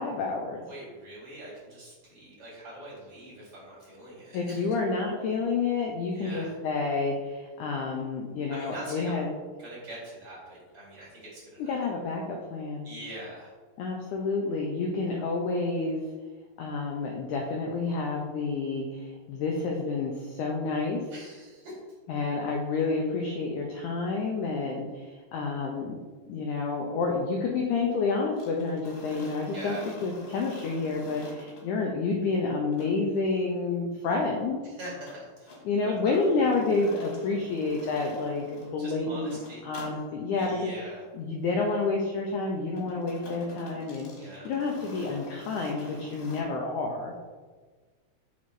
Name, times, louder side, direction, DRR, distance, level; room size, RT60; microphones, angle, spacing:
voice 1, 0.0-0.6 4.3-9.3 11.6-12.9 13.8-16.0 16.6-21.1 22.1-26.0 26.3-34.6 35.7-39.4 39.6-40.7 41.1-47.1, left 3 dB, 80° left, 0 dB, 1.8 m, -29 dB
voice 2, 0.7-4.8 6.1-6.5 8.5-9.3 9.6-11.8 12.8-13.5 21.1-21.8 29.5-29.9 34.6-36.5 36.8-36.9 38.8-39.9 40.3-41.0 44.2-44.5, right 1 dB, 45° right, -8 dB, 2.8 m, -43 dB
sound 1, 28.4-31.7 32.7-32.9 35.1-35.6 36.1-38.7 39.2-39.9 40.3-40.5 42.8-46.4, left 2 dB, 65° left, 3.1 m, -46 dB
6.0 x 4.2 x 4.6 m, 1.4 s
omnidirectional pair, 4.2 m